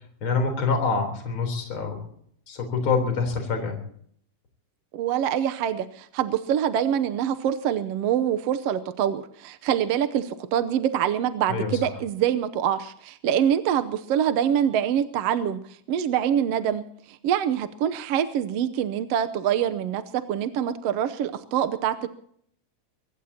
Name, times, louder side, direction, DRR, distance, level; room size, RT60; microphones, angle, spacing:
voice 1, 0.2-2.0 2.5-3.8 11.5-11.8, left 4 dB, 45° left, 4 dB, 4.4 m, -26 dB
voice 2, 4.9-15.6 15.9-16.8 17.1-22.1, right 9 dB, 70° right, 10 dB, 1.6 m, -25 dB
23.5 x 20.0 x 2.9 m, 0.64 s
omnidirectional pair, 3.4 m